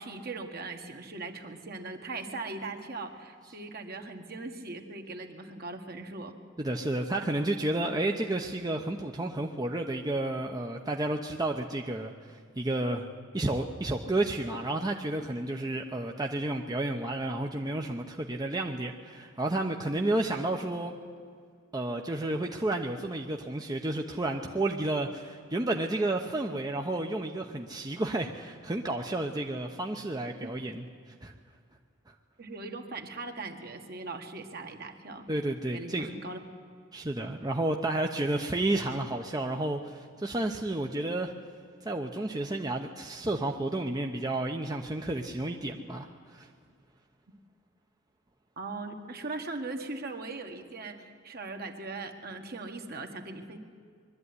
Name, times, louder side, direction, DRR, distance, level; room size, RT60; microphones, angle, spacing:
voice 1, 0.0-6.3 30.4-30.6 32.4-35.3 35.7-36.4 48.6-53.6, right 3 dB, 50° right, 4 dB, 1.7 m, -39 dB
voice 2, 6.6-13.1 13.3-21.0 21.7-30.8 31.2-31.3 35.3-36.1 36.9-41.3 41.8-46.5, right 2 dB, 20° right, 2 dB, 0.8 m, -31 dB
22.0 x 12.5 x 9.7 m, 2.1 s
head